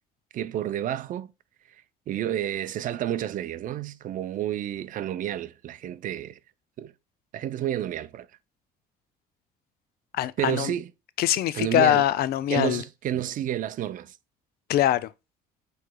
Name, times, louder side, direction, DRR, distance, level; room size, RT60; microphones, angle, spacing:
voice 1, 0.3-1.3 2.1-6.4 6.8-6.9 7.3-8.3 10.4-10.9 11.5-12.0 12.5-14.2, right 11 dB, 50° right, 0.5 m, -30 dB
voice 2, 10.1-10.7 11.2-12.8 14.7-15.1, left 12 dB, 65° left, 0.4 m, -23 dB
7.3 x 3.2 x 2.2 m
cardioid pair, 110°, 17 cm